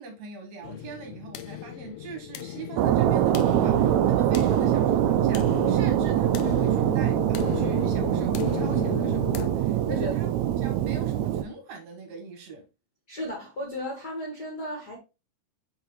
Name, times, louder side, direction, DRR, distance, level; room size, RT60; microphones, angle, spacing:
voice 1, 0.0-12.6, right 4 dB, 65° right, 2.2 m, -42 dB
sound 1, 0.6-9.5, left 11 dB, 80° left, 1.9 m, -36 dB
sound 2, 2.8-11.4, right 11 dB, 90° right, 1.6 m, -23 dB
voice 2, 13.1-15.0, left 1 dB, 45° left, 1.3 m, -34 dB
5.9 x 5.5 x 3.0 m
omnidirectional pair, 3.9 m